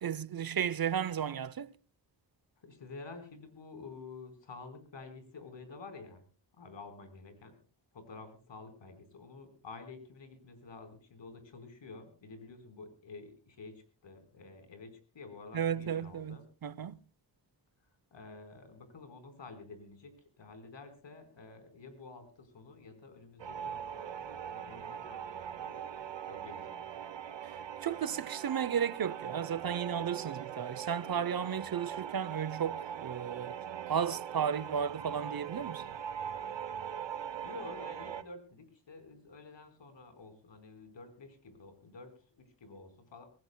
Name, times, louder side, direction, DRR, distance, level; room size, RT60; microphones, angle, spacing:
voice 1, 0.0-1.7 15.5-17.0 27.8-33.6 33.9-35.9, right 8 dB, 55° right, 0.7 m, -34 dB
voice 2, 2.6-6.2 6.5-7.6 7.9-16.5 18.1-25.8 26.3-27.0 37.4-43.3, left 3 dB, 80° left, 4.4 m, -50 dB
sound 1, 23.4-38.2, right 8 dB, 75° right, 1.1 m, -41 dB
25.0 x 18.5 x 2.2 m
wide cardioid pair, 110°, 44 cm